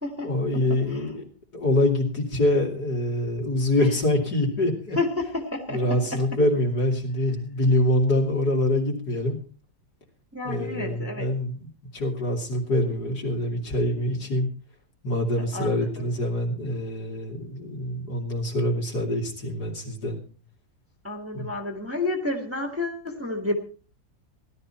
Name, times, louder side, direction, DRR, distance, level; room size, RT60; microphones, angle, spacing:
voice 1, 0.2-1.2 1.5-5.0 5.7-9.4 10.4-14.5 15.0-20.2 21.3-21.5, left 1 dB, 60° left, 1 dB, 3.2 m, -25 dB
voice 2, 5.0-6.2 10.3-11.3 15.4-16.1 21.0-23.5, left 2 dB, 10° right, 3 dB, 1.8 m, -30 dB
16.5 x 12.0 x 4.4 m, 0.38 s
omnidirectional pair, 2.0 m